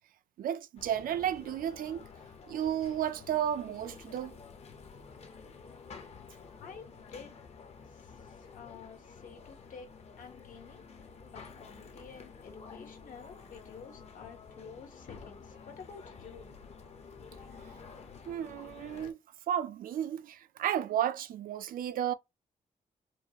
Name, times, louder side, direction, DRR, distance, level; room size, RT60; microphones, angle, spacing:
voice 1, 0.4-2.0 2.5-4.4 17.6-17.7 18.3-19.2 19.5-22.1, right 10 dB, 85° right, 0.4 m, -33 dB
sound 1, 0.8-19.1, left 5 dB, 50° left, 0.7 m, -50 dB
voice 2, 6.6-7.4 7.9-9.9 10.2-16.5, left 6 dB, 70° left, 1.2 m, -51 dB
4.5 x 2.4 x 2.9 m
wide cardioid pair, 145°, 14 cm